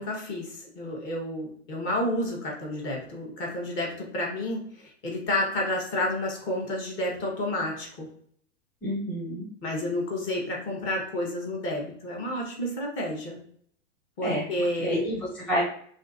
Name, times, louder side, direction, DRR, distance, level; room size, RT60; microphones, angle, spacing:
voice 1, 0.0-8.1 9.6-13.4 14.2-15.0, left 1 dB, 30° left, -1 dB, 1.2 m, -30 dB
voice 2, 8.8-9.5 14.2-15.6, equal, 5° left, -7 dB, 0.7 m, -29 dB
3.5 x 2.6 x 2.6 m, 0.62 s
figure-of-eight pair, 95°, 37 cm